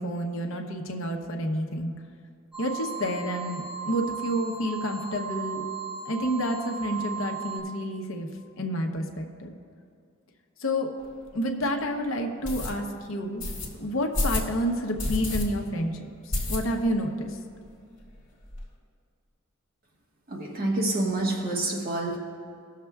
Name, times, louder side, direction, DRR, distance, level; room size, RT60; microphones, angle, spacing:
voice 1, 0.0-1.9 2.6-5.6 6.0-8.3 8.6-9.5 10.6-10.9 11.3-13.4 13.8-17.4, equal, 65° left, 2 dB, 0.8 m, -29 dB
sound 1, 2.5-7.6, right 7 dB, 5° right, 1.3 m, -36 dB
sound 2, 11.0-11.1 11.6-11.7 12.4-12.7 13.4-13.7 14.1-14.5 15.0-15.4 15.7-15.8 16.3-17.0 17.3-17.4 17.6-17.7 18.0-18.6, left 1 dB, 40° left, 2.0 m, -29 dB
voice 2, 20.3-22.2, right 2 dB, 45° right, -2 dB, 1.3 m, -27 dB
19.5 x 6.6 x 2.3 m, 2.3 s
head